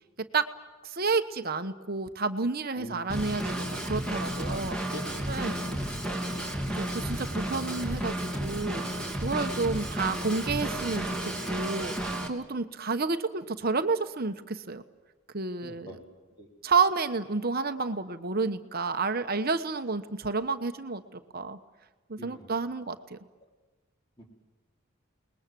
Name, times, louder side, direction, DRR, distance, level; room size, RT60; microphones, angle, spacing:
voice 1, 0.8-4.8 5.3-5.7 6.8-14.8 15.3-16.0 16.6-21.6 22.1-23.2, right 4 dB, 45° right, 8 dB, 1.1 m, -30 dB
voice 2, 2.8-3.2 4.4-5.0 5.3-6.2 12.0-12.1 15.6-16.0 16.4-16.5 22.2-22.5 24.2-24.3, equal, 20° left, 0 dB, 4.2 m, -45 dB
Drum kit / Drum, 3.1-12.3, right 1 dB, 5° left, 2.8 m, -32 dB
29.5 x 20.5 x 7.6 m, 1.2 s
head